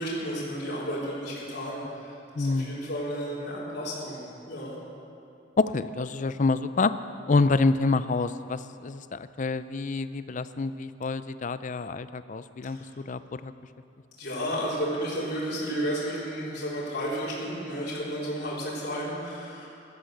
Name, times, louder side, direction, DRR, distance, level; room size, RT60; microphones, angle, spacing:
voice 1, 0.0-4.8 12.7-12.9 14.2-19.7, equal, 55° left, -7 dB, 4.0 m, -32 dB
voice 2, 2.4-2.8 5.6-6.9 7.3-13.5, left 3 dB, 40° left, 13 dB, 0.5 m, -27 dB
16.0 x 12.5 x 6.5 m, 2.7 s
head